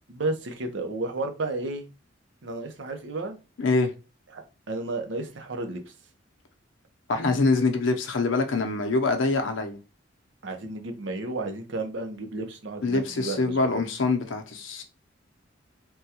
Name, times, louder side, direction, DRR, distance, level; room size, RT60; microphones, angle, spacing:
voice 1, 0.1-1.9 2.4-3.4 4.3-5.8 10.4-13.8, right 2 dB, 70° right, 0.7 m, -32 dB
voice 2, 3.6-3.9 7.1-9.8 12.8-14.8, left 3 dB, 90° left, 0.6 m, -24 dB
3.5 x 2.2 x 2.8 m
head